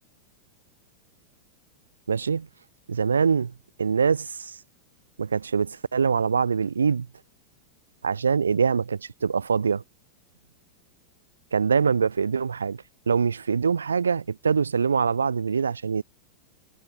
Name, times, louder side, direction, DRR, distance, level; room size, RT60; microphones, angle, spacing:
voice 1, 2.1-2.5 2.9-3.5 3.8-4.6 5.2-7.1 8.0-9.8 11.5-16.0, right 6 dB, 75° right, 0.4 m, -24 dB
figure-of-eight pair, 90°, 0 cm